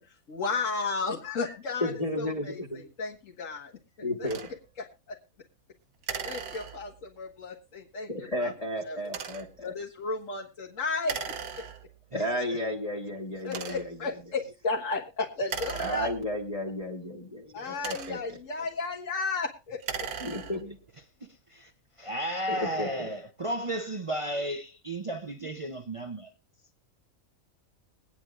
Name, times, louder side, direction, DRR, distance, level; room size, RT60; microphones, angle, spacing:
voice 1, 0.3-1.9 2.2-2.6 3.0-3.7 4.2-4.3 5.1-5.2 6.2-8.1 8.4-8.5 8.8-9.0 9.6-11.2 13.4-16.1 17.5-19.8, left 4 dB, 60° left, 1.9 m, -33 dB
voice 2, 1.8-2.8 4.0-4.4 8.1-9.7 12.1-14.0 15.8-18.4 20.2-20.6 22.5-23.1, equal, 25° left, 1.6 m, -33 dB
sound 1, 4.3-4.5 6.0-7.1 9.0-9.6 11.0-12.0 12.7-12.8 13.4-14.1 15.4-16.6 17.5-18.4 19.7-20.8, right 7 dB, 85° right, 1.5 m, -38 dB
voice 3, 12.1-12.6 20.5-21.1 21.5-21.7 22.0-26.3, right 1 dB, 40° right, 0.4 m, -34 dB
22.5 x 9.5 x 2.4 m
omnidirectional pair, 1.6 m